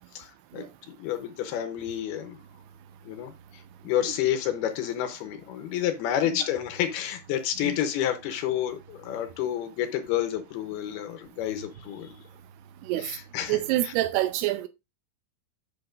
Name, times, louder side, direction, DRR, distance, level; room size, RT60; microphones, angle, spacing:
voice 1, 0.1-2.4 3.1-12.2 13.0-13.9, left 11 dB, 75° left, 2.4 m, -30 dB
voice 2, 13.5-14.7, right 15 dB, 90° right, 2.3 m, -27 dB
8.7 x 7.8 x 2.5 m
omnidirectional pair, 5.4 m